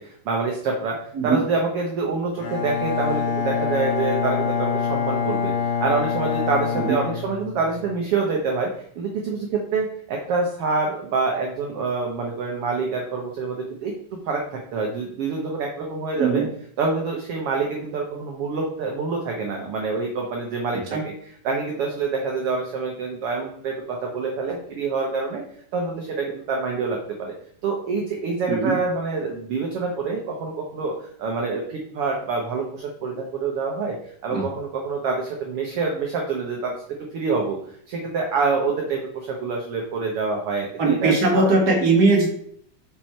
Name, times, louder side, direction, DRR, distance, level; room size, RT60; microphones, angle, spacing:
voice 1, 0.0-13.9 14.2-16.5 16.8-21.1 21.4-25.4 25.7-27.3 27.6-34.0 34.2-36.7 37.1-41.5, right 4 dB, 80° right, 0 dB, 1.3 m, -26 dB
Bowed string instrument, 2.4-7.9, left 7 dB, 75° left, 2.9 m, -25 dB
voice 2, 20.7-21.0 28.5-28.8 34.3-34.4 40.8-42.3, right 3 dB, 40° right, -1 dB, 1.6 m, -20 dB
6.0 x 4.4 x 4.5 m, 0.65 s
omnidirectional pair, 3.8 m